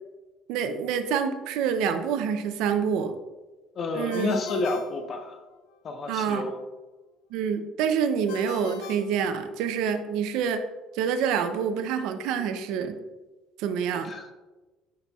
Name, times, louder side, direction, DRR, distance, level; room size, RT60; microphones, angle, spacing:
voice 1, 0.5-3.1 3.9-4.3 6.1-6.4 7.3-10.6 10.9-13.0 13.6-14.1, right 7 dB, 80° right, 9 dB, 0.5 m, -27 dB
voice 2, 3.8-5.4 5.8-6.6 13.9-14.3, left 3 dB, 35° left, 6 dB, 0.7 m, -30 dB
Ringtone, 4.1-5.8 8.3-10.0, left 7 dB, 80° left, 0.4 m, -43 dB
10.0 x 4.1 x 2.3 m, 1.2 s
cardioid pair, 145°, 0 cm